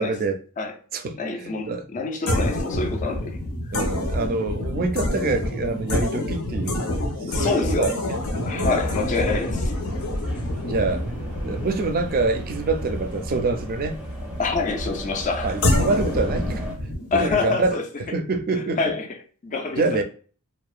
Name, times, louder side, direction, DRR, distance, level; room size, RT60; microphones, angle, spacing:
voice 1, 0.0-0.4 0.9-1.9 3.7-8.2 8.5-8.9 10.7-11.2 11.4-14.0 15.4-18.8 19.8-20.0, right 3 dB, 40° right, 0.4 m, -26 dB
voice 2, 1.1-3.4 7.3-7.9 8.4-9.7 14.4-15.5 17.1-17.8 18.5-19.1 19.4-20.0, left 4 dB, 35° left, 0.4 m, -26 dB
sound 1, 2.3-14.0 15.6-17.7, left 1 dB, 80° left, 0.7 m, -27 dB
sound 2, 7.9-16.8, equal, 5° right, 0.7 m, -34 dB
2.8 x 2.1 x 2.3 m
head